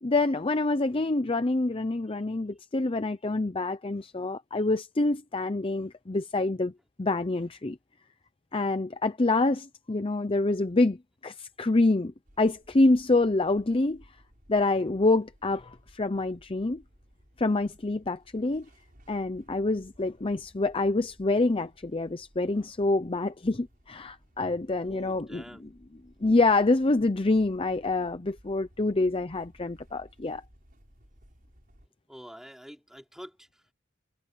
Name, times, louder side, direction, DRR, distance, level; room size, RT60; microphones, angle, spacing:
voice 1, 0.0-6.7 7.0-7.8 8.5-11.0 11.2-14.0 14.5-16.8 17.4-18.6 19.1-25.4 26.2-30.4, left 2 dB, 25° left, 0.6 m, -26 dB
sound 1, 12.2-31.9, equal, 45° right, 6.7 m, -59 dB
voice 2, 24.8-25.7 32.1-33.7, equal, ahead, 4.7 m, -46 dB
head